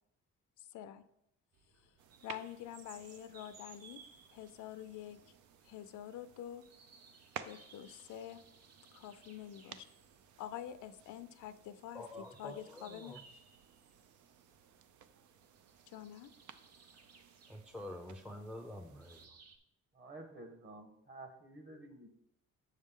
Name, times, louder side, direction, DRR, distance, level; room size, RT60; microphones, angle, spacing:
voice 1, 0.6-1.0 2.2-4.0 4.3-5.2 5.6-6.6 7.4-8.4 8.9-9.8 10.4-12.0 12.4-13.2 15.9-16.3, left 11 dB, 80° left, 12 dB, 0.6 m, -47 dB
sound 1, 1.5-19.6, right 4 dB, 55° right, 0.9 m, -62 dB
sound 2, 2.0-19.3, right 8 dB, 75° right, 0.6 m, -56 dB
voice 2, 11.9-13.2 17.5-19.4, left 1 dB, 5° right, 4 dB, 0.5 m, -47 dB
voice 3, 19.9-22.1, right 2 dB, 40° right, 6 dB, 1.3 m, -51 dB
6.8 x 6.4 x 3.7 m, 0.78 s
cardioid pair, 90°, 30 cm